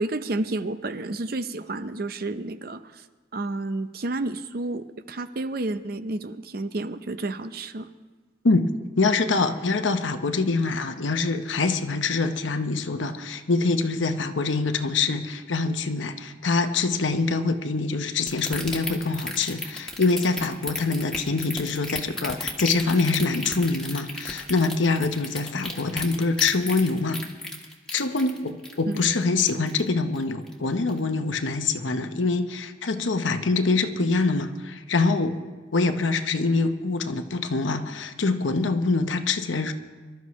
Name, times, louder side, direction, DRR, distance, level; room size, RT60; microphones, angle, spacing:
voice 1, 0.0-3.0 3.3-7.9 28.9-29.1, right 2 dB, 50° right, 11 dB, 0.6 m, -30 dB
voice 2, 9.0-27.2 27.9-35.4 35.7-39.7, left 3 dB, 85° left, 7 dB, 0.9 m, -25 dB
sound 1, 18.3-29.9 30.2-30.5 30.9-31.0, left 2 dB, 5° left, 1.5 m, -33 dB
24.5 x 12.5 x 3.2 m, 1.3 s
head